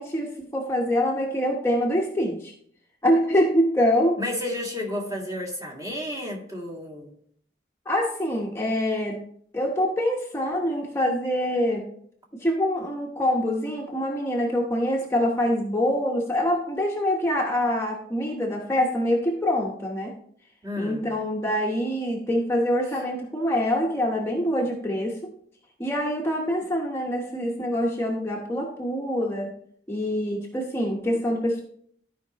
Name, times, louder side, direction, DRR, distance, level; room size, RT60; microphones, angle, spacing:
voice 1, 0.0-2.5 3.0-4.2 7.9-9.2 9.5-11.8 12.3-20.1 20.8-25.3 25.8-29.5 29.9-31.6, equal, 15° left, -1 dB, 1.0 m, -25 dB
voice 2, 4.2-7.1 20.6-21.1, left 1 dB, 20° right, -2 dB, 1.9 m, -32 dB
14.5 x 5.2 x 2.9 m, 0.63 s
head